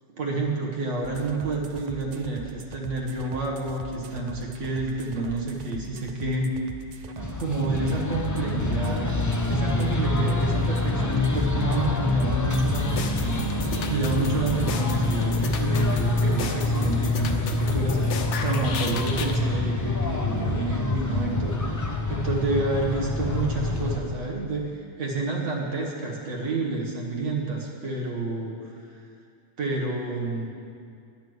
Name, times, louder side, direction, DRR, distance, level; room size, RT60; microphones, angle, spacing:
voice 1, 0.2-6.6 7.4-9.1 9.5-21.6 22.1-28.6 29.6-30.5, right 2 dB, 85° right, -2 dB, 1.5 m, -29 dB
sound 1, 1.0-14.6, right 7 dB, 55° right, 0.4 m, -42 dB
sound 2, 7.2-24.0, left 2 dB, 20° left, 0.6 m, -26 dB
sound 3, 12.5-19.4, left 6 dB, 75° left, 1.0 m, -34 dB
11.0 x 5.9 x 7.7 m, 2.3 s
omnidirectional pair, 1.2 m